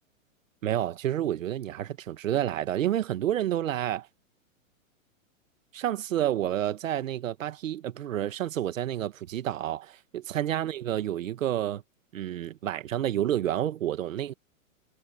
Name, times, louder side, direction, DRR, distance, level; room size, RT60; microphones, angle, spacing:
voice 1, 0.6-4.1 5.7-11.8 12.1-14.3, right 11 dB, 70° right, 1.9 m, -29 dB
hypercardioid pair, 140°, 40 cm